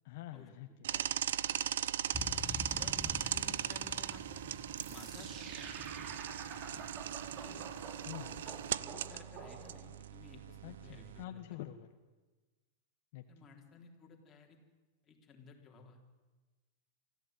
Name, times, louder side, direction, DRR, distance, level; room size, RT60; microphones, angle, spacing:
voice 1, 0.0-0.9 8.1-8.5 10.6-11.9 13.1-13.5, left 13 dB, 55° left, 6 dB, 1.3 m, -47 dB
sound 1, 0.8-11.2, right 11 dB, 85° right, 0.7 m, -39 dB
sound 2, 2.1-8.8, left 3 dB, 5° left, 1.1 m, -48 dB
voice 2, 2.8-5.7 6.1-6.2 7.4-7.7 8.4-11.4 13.3-14.6 15.0-16.0, left 5 dB, 20° left, 1 dB, 3.7 m, -56 dB
sound 3, 4.8-10.1, right 6 dB, 35° right, 2.6 m, -49 dB
26.0 x 14.5 x 9.3 m, 1.2 s
supercardioid pair, 155°, 0 cm